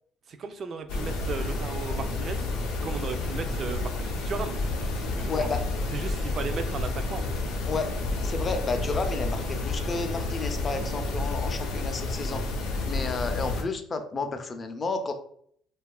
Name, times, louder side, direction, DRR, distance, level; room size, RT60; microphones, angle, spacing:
voice 1, 0.3-2.5 2.8-4.6 5.2-5.5 5.9-7.2, right 5 dB, 50° right, 8 dB, 0.3 m, -36 dB
sound 1, 0.9-13.6, left 2 dB, 90° left, 0.5 m, -30 dB
voice 2, 8.2-12.4 12.8-15.1, left 3 dB, 35° left, 7 dB, 0.4 m, -31 dB
2.8 x 2.3 x 2.3 m, 0.64 s
supercardioid pair, 90°, 0 cm